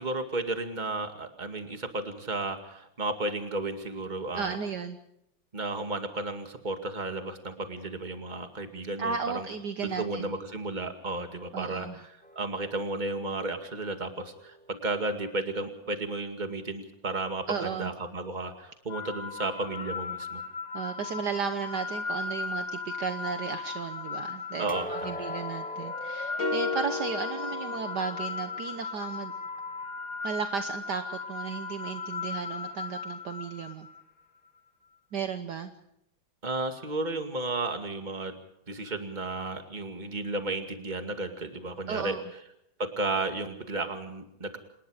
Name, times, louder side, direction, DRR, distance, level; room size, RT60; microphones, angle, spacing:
voice 1, 0.0-4.6 5.5-9.5 9.8-20.4 24.6-25.2 36.4-38.4 38.7-42.2 42.8-44.6, right 2 dB, 20° right, 6 dB, 2.2 m, -33 dB
voice 2, 4.3-5.0 9.0-10.3 11.5-12.0 17.5-17.9 20.7-29.3 30.2-33.9 35.1-35.7 41.9-42.2, right 6 dB, 60° right, 8 dB, 1.6 m, -34 dB
sound 1, 12.2-15.3 24.7-28.6 29.0-29.2 29.8-29.9, left 1 dB, 5° left, 0.6 m, -44 dB
sound 2, 18.9-34.0, left 4 dB, 80° left, 5.5 m, -37 dB
sound 3, 26.4-28.7, left 4 dB, 65° left, 3.3 m, -34 dB
27.5 x 20.0 x 5.0 m, 0.78 s
omnidirectional pair, 2.2 m